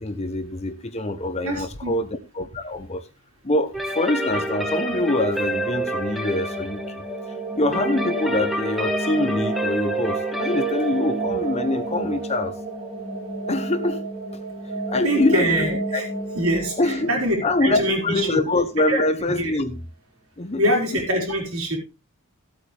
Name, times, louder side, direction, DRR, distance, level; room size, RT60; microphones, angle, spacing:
voice 1, 0.0-3.0 3.4-6.8 7.6-12.6 13.5-14.0 14.9-15.7 15.9-16.0 16.8-17.1 17.4-19.8 20.4-20.7, left 2 dB, 30° left, 0.8 m, -24 dB
voice 2, 1.4-2.0 14.9-16.0 16.4-17.4 17.6-18.4 18.8-19.0 19.4-19.5 20.6-21.8, right 1 dB, 65° right, 4.5 m, -24 dB
sound 1, 3.7-13.4, equal, ahead, 1.3 m, -30 dB
sound 2, 4.2-19.0, right 3 dB, 20° right, 2.4 m, -31 dB
16.0 x 8.4 x 3.4 m
head